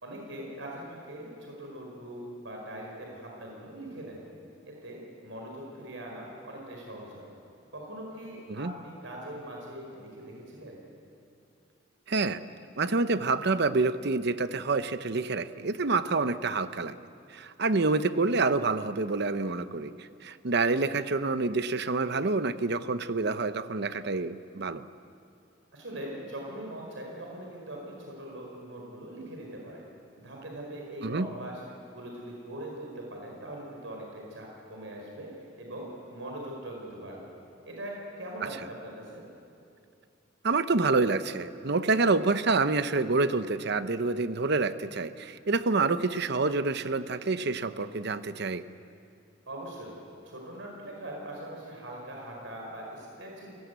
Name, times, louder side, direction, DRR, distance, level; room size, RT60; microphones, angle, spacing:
voice 1, 0.0-4.3 4.6-7.3 7.7-10.8 25.7-29.8 30.2-31.6 31.9-35.3 35.6-37.3 37.7-39.2 49.5-50.0 50.2-53.5, right 1 dB, 85° right, -1 dB, 4.9 m, -41 dB
voice 2, 12.1-12.4 12.8-17.0 17.3-24.9 31.0-31.3 40.4-48.6, right 3 dB, 60° right, 12 dB, 0.9 m, -27 dB
29.5 x 18.0 x 8.2 m, 2.6 s
head